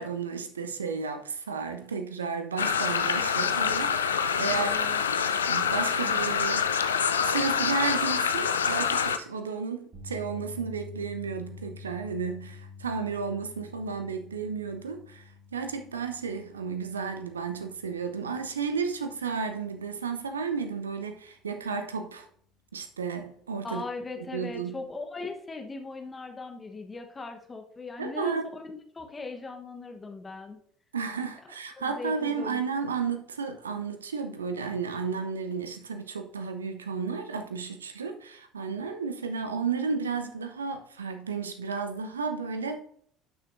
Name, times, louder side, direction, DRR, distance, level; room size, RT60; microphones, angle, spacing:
voice 1, 0.0-4.7 5.5-6.7 7.2-22.3 22.7-23.8 24.3-24.8 28.0-28.4 30.9-42.8, right 5 dB, 80° right, 0.7 m, -33 dB
sound 1, 2.6-9.2, left 6 dB, 80° left, 0.4 m, -26 dB
voice 2, 4.5-5.0 23.6-30.6 31.8-32.6, left 3 dB, 20° left, 1.1 m, -39 dB
sound 2, 9.9-22.2 22.5-22.8 25.0-25.1, left 5 dB, 30° right, 3.9 m, -48 dB
11.5 x 6.3 x 2.6 m
figure-of-eight pair, 65°, 0 cm